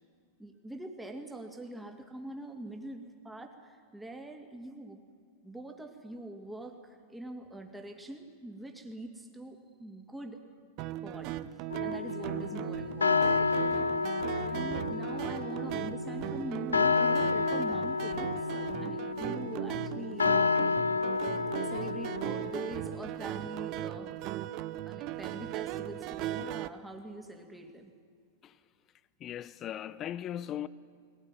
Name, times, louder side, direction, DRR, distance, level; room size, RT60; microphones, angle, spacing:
voice 1, 0.4-5.0 5.4-10.4 11.0-11.3 11.8-13.9 14.3-20.6 21.6-24.2 24.9-27.9, right 1 dB, 5° right, 2.7 m, -44 dB
sound 1, 10.8-26.7, right 13 dB, 45° right, 0.8 m, -37 dB
sound 2, 11.7-22.9, left 4 dB, 90° left, 0.6 m, -30 dB
voice 2, 29.2-30.7, left 11 dB, 35° left, 0.8 m, -38 dB
20.5 x 17.5 x 9.9 m
hypercardioid pair, 100°, 0 cm